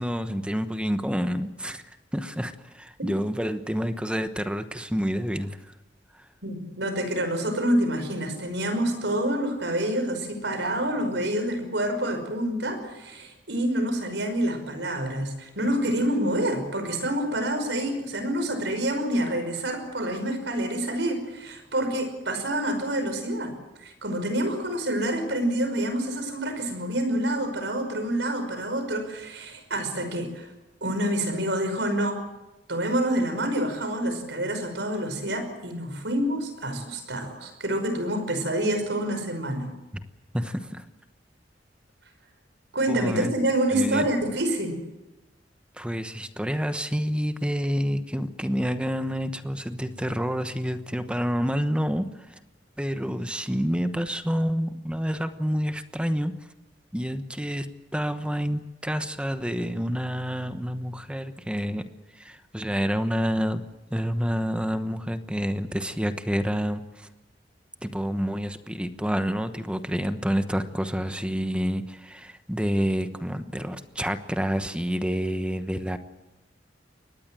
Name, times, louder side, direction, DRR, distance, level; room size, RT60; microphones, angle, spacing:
voice 1, 0.0-1.8 2.1-5.7 6.2-6.3 40.3-40.8 42.9-43.3 43.7-44.1 45.7-52.4 52.8-56.3 56.9-57.7 57.9-61.8 62.1-63.6 63.9-67.1 67.8-76.0, equal, 5° right, 9 dB, 1.1 m, -28 dB
voice 2, 6.4-23.5 23.8-30.5 30.8-32.2 32.7-39.7 42.7-44.8, right 1 dB, 80° right, 7 dB, 5.5 m, -27 dB
23.5 x 19.5 x 7.6 m, 1.0 s
head